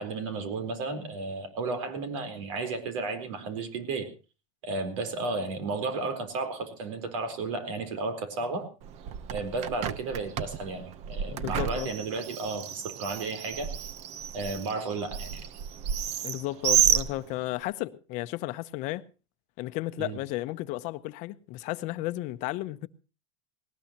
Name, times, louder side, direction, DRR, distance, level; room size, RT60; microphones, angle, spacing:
voice 1, 0.0-4.1 4.6-8.7 9.3-13.7 14.3-15.4 20.0-20.2, right 3 dB, 75° right, 4.2 m, -33 dB
Bird, 8.8-17.7, right 9 dB, 40° right, 0.9 m, -31 dB
voice 2, 11.3-11.9 16.2-19.0 19.6-22.9, left 17 dB, 50° left, 0.8 m, -33 dB
19.5 x 19.0 x 3.0 m
supercardioid pair, 140°, 17 cm